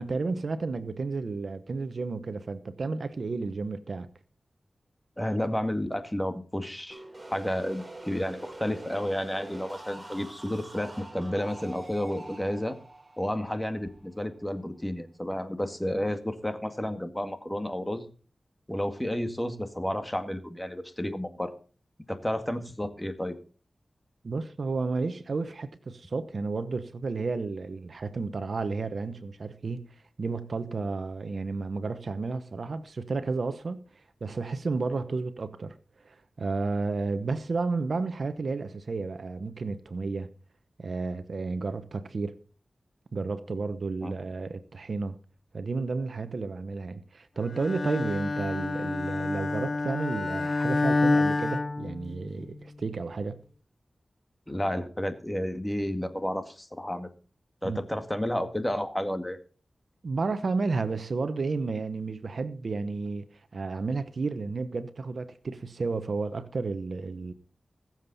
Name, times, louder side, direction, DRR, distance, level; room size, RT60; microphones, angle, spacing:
voice 1, 0.0-4.1 24.2-35.8 36.0-40.3 40.8-42.4 43.1-45.2 45.5-53.4 57.6-57.8 60.0-63.3 63.5-67.3, right 4 dB, 70° right, 1.0 m, -32 dB
voice 2, 5.2-7.0 7.3-12.8 13.2-18.0 18.7-21.5 22.1-23.4 44.0-44.1 54.5-57.1 57.6-59.4, left 1 dB, 15° left, 2.0 m, -31 dB
sound 1, 6.9-14.6, right 2 dB, 25° right, 4.8 m, -45 dB
Bowed string instrument, 47.6-52.5, left 3 dB, 45° left, 0.8 m, -28 dB
21.0 x 7.5 x 4.1 m
cardioid pair, 55°, 0 cm